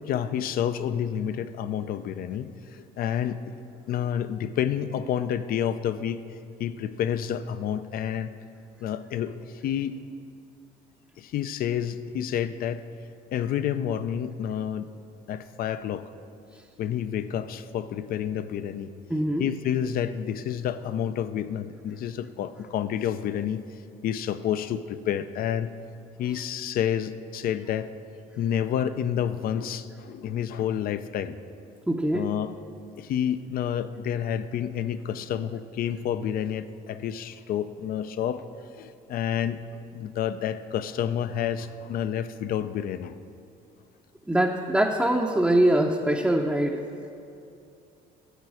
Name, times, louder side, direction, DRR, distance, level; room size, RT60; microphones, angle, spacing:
voice 1, 0.1-3.5 3.9-6.2 6.6-8.3 8.8-10.0 11.2-12.8 13.3-14.9 15.3-16.0 16.8-18.9 19.4-23.6 24.0-25.7 26.2-27.9 28.4-31.4 32.1-32.5 33.0-38.4 38.8-39.7 39.9-43.1, left 9 dB, 60° left, 12 dB, 0.5 m, -29 dB
voice 2, 19.1-19.5 31.9-32.3 44.3-46.8, right 1 dB, 5° right, 0 dB, 0.6 m, -23 dB
12.5 x 7.7 x 4.8 m, 2.6 s
cardioid pair, 110°, 17 cm